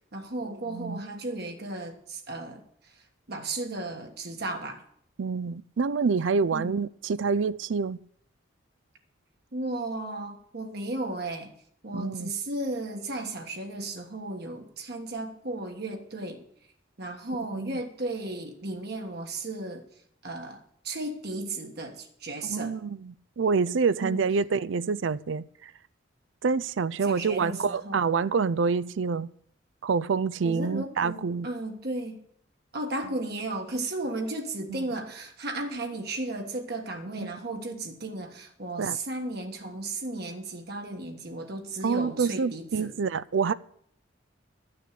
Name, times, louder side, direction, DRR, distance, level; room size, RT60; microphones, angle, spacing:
voice 1, 0.1-4.8 6.5-6.8 9.5-11.5 11.8-16.4 17.0-19.8 20.2-22.7 24.0-24.2 27.0-28.0 30.4-32.2 32.7-43.0, right 2 dB, 55° right, 3 dB, 1.5 m, -35 dB
voice 2, 0.7-1.0 5.2-8.0 11.9-12.3 17.5-17.7 22.5-25.7 26.4-29.3 29.8-31.5 34.7-34.8 37.2-37.3 38.8-39.0 41.8-43.5, right 5 dB, 70° right, 18 dB, 0.4 m, -27 dB
12.0 x 6.5 x 8.4 m, 0.65 s
head